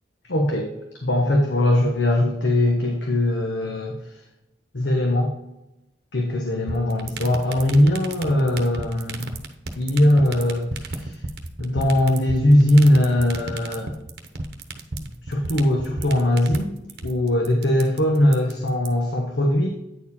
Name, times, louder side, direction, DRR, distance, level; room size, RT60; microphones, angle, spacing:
voice 1, 0.3-0.7 1.0-4.2 4.7-5.3 6.1-9.3 9.8-11.2 11.6-13.9 15.2-16.7 17.0-19.7, left 1 dB, 85° left, 0 dB, 1.1 m, -20 dB
sound 1, 6.7-18.9, right 3 dB, 60° right, 0.9 m, -31 dB
9.1 x 4.4 x 4.2 m, 0.92 s
head